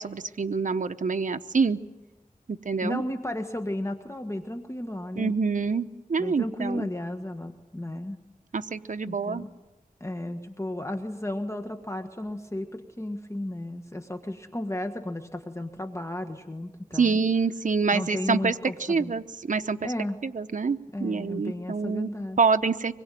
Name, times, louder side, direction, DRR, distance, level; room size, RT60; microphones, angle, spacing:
voice 1, 0.0-1.8 2.5-3.0 5.2-6.9 8.5-9.4 16.9-18.5 18.8-19.9 20.2-22.1 22.4-22.9, right 5 dB, 60° right, 8 dB, 0.9 m, -26 dB
voice 2, 2.8-5.3 6.2-8.2 9.0-9.5 10.0-17.1 17.9-19.1 19.8-20.2 20.9-22.4, left 1 dB, 20° left, 6 dB, 1.6 m, -34 dB
24.5 x 21.5 x 9.2 m, 1.1 s
wide cardioid pair, 60°, 15 cm